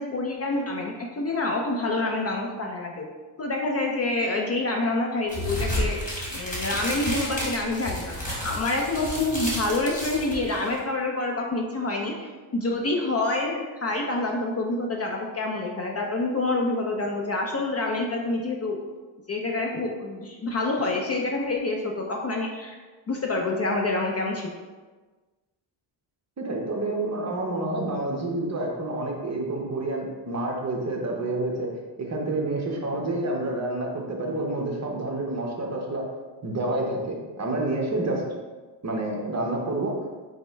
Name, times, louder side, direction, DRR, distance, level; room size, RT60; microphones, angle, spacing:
voice 1, 0.0-3.1 3.4-6.0 6.3-18.8 19.3-22.8 23.1-24.5, left 2 dB, 35° left, 0 dB, 0.4 m, -27 dB
sound 1, 5.3-10.8, left 1 dB, 15° left, 1.4 m, -31 dB
voice 2, 26.4-31.7 32.0-36.1 36.4-38.2 38.8-40.0, right 2 dB, 35° right, -1 dB, 0.8 m, -28 dB
5.1 x 2.1 x 4.4 m, 1.3 s
wide cardioid pair, 140°, 46 cm